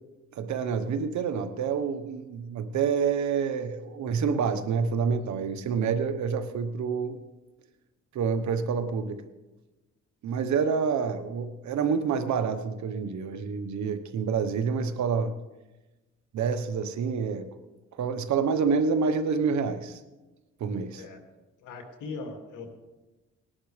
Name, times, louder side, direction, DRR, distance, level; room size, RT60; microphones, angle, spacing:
voice 1, 0.3-7.2 8.1-9.2 10.2-15.3 16.3-17.5 17.9-20.0 20.6-21.0, right 6 dB, 70° right, 9 dB, 1.1 m, -28 dB
voice 2, 21.6-22.7, left 3 dB, 85° left, 3 dB, 2.3 m, -39 dB
19.5 x 11.0 x 3.3 m, 1.1 s
cardioid pair, 90°, 30 cm